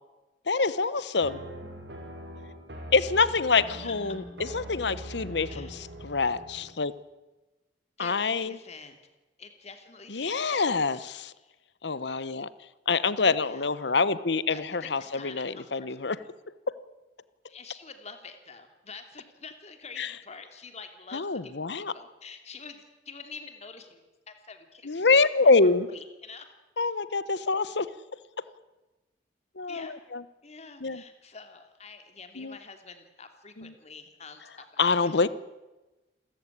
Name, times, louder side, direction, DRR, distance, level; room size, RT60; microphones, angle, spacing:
voice 1, 0.5-1.4 2.9-6.9 8.0-8.6 10.1-11.3 11.8-12.5 12.9-16.2 20.0-20.1 21.1-21.9 24.8-25.9 26.8-27.9 29.6-30.2 30.8-31.0 32.4-32.6 33.6-33.7 34.8-35.3, left 4 dB, 70° left, 17 dB, 1.0 m, -26 dB
sound 1, 1.2-6.8, equal, 70° right, 5.4 m, -42 dB
voice 2, 8.0-9.0 9.4-10.9 11.3-11.5 13.4-13.9 14.5-16.3 17.5-24.0 24.3-26.5 29.7-30.1 30.4-35.1, left 4 dB, 40° left, 7 dB, 3.0 m, -47 dB
28.0 x 14.5 x 9.9 m, 1.1 s
head